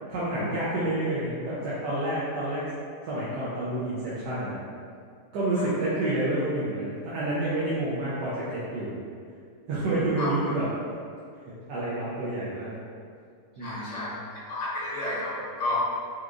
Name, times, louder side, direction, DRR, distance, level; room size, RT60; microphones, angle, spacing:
voice 1, 0.1-2.7 3.1-4.5 5.3-8.9 9.7-10.6 11.7-12.7 13.6-14.1, right 1 dB, 80° right, -9 dB, 1.3 m, -29 dB
voice 2, 13.6-14.2 14.5-15.8, left 2 dB, 50° left, -8 dB, 1.1 m, -31 dB
4.6 x 2.4 x 2.4 m, 2.2 s
omnidirectional pair, 1.8 m